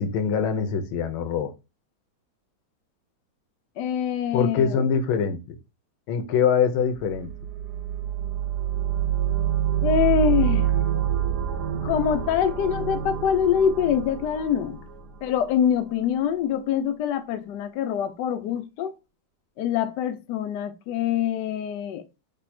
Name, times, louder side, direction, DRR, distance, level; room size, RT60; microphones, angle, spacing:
voice 1, 0.0-1.5 4.3-5.6 6.1-7.3, left 6 dB, 90° left, 1.6 m, -23 dB
voice 2, 3.8-4.8 9.8-10.8 11.8-14.8 15.2-18.9 19.6-22.0, left 8 dB, 70° left, 1.1 m, -24 dB
sound 1, 6.9-15.8, right 10 dB, 65° right, 1.1 m, -27 dB
3.5 x 3.4 x 4.2 m
omnidirectional pair, 2.2 m